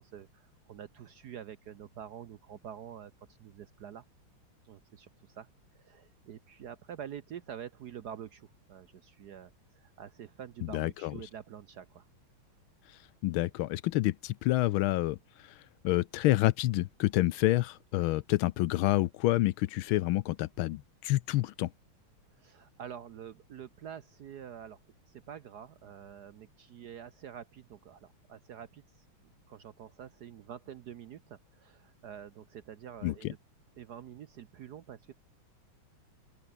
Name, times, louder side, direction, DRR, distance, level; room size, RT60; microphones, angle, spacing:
voice 1, 0.0-3.1 3.4-4.0 4.6-5.5 5.8-12.1 22.4-24.8 25.1-28.8 29.5-33.4 33.8-35.1, right 9 dB, 60° right, 1.2 m, -47 dB
voice 2, 10.7-11.1 13.2-21.7 33.0-33.3, left 16 dB, 85° left, 1.4 m, -28 dB
open air
omnidirectional pair, 2.3 m